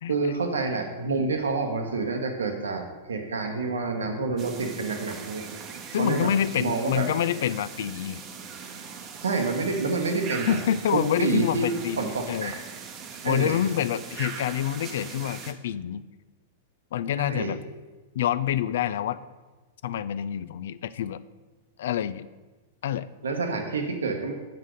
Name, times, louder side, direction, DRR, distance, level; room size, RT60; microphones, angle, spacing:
voice 1, 0.1-5.5 6.0-6.3 6.6-7.1 9.2-10.6 10.9-11.7 12.0-12.6 13.2-13.6 17.1-17.5 23.2-24.3, right 4 dB, 85° right, 4 dB, 0.9 m, -28 dB
sound 1, 4.4-15.5, right 6 dB, 35° right, 0.8 m, -40 dB
voice 2, 5.9-8.2 10.5-12.5 13.2-16.1 16.9-17.6 18.1-19.2 19.8-21.2 21.8-22.3 22.8-23.1, left 10 dB, 70° left, 15 dB, 0.3 m, -27 dB
6.5 x 4.0 x 6.3 m, 1.3 s
hypercardioid pair, 105°, 0 cm